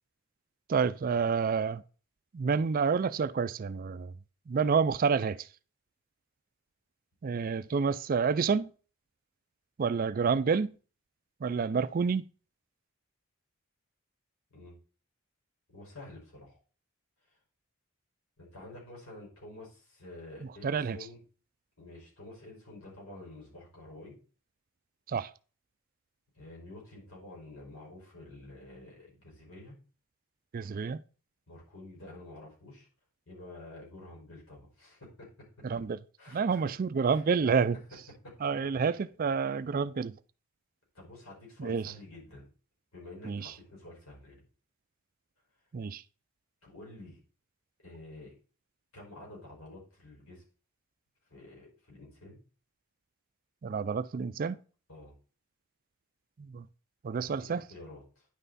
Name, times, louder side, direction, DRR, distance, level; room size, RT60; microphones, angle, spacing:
voice 1, 0.7-1.8 2.3-4.1 4.5-5.4 7.2-8.7 9.8-10.7 11.4-12.2 20.6-21.0 25.1-25.3 30.5-31.0 35.6-36.0 36.3-37.8 38.4-38.9 39.2-40.1 41.6-41.8 43.3-43.5 45.7-46.0 53.6-54.6 56.4-56.6 57.0-57.6, right 5 dB, 40° right, 0.3 m, -28 dB
voice 2, 15.7-16.6 18.4-21.2 21.8-24.2 26.4-29.8 31.5-32.9 33.3-35.3 35.8-35.9 36.2-36.7 37.0-37.7 38.2-38.3 38.8-38.9 39.5-39.6 40.9-42.4 42.9-44.4 46.6-47.2 47.8-48.3 48.9-50.4 51.3-52.4 54.9-55.2 57.2-58.3, left 2 dB, 75° left, 5.1 m, -49 dB
10.0 x 5.6 x 4.0 m
head